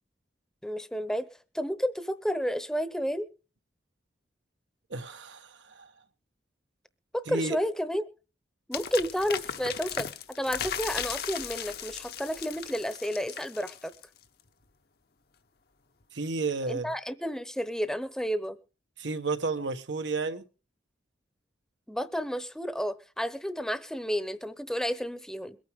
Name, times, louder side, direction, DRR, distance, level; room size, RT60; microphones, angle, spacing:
voice 1, 0.6-1.3 1.5-3.3 7.1-8.0 8.7-10.1 10.4-13.9 16.7-18.6 21.9-25.6, equal, 5° left, 0.8 m, -31 dB
voice 2, 4.9-5.9 7.3-7.6 16.1-16.9 19.0-20.4, right 3 dB, 90° right, 1.2 m, -32 dB
sound 1, 8.7-14.2, left 8 dB, 60° left, 0.9 m, -37 dB
22.5 x 9.1 x 3.6 m
head